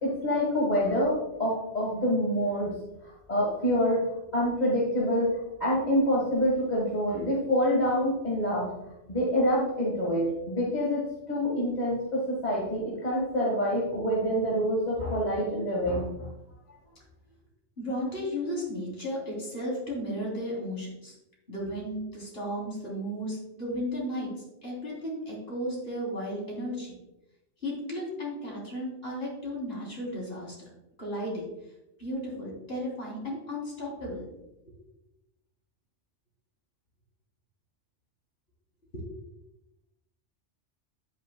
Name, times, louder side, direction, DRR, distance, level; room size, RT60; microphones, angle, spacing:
voice 1, 0.0-2.7 3.3-4.0 4.3-5.3 5.6-8.7 9.1-11.0 11.3-16.1, equal, 35° left, -4 dB, 1.8 m, -26 dB
voice 2, 17.8-21.1 21.5-24.3 24.6-26.9 27.6-30.7 31.0-31.4 32.0-34.3 38.9-39.1, equal, 55° left, -4 dB, 3.7 m, -34 dB
10.0 x 8.6 x 2.2 m, 0.91 s
omnidirectional pair, 1.2 m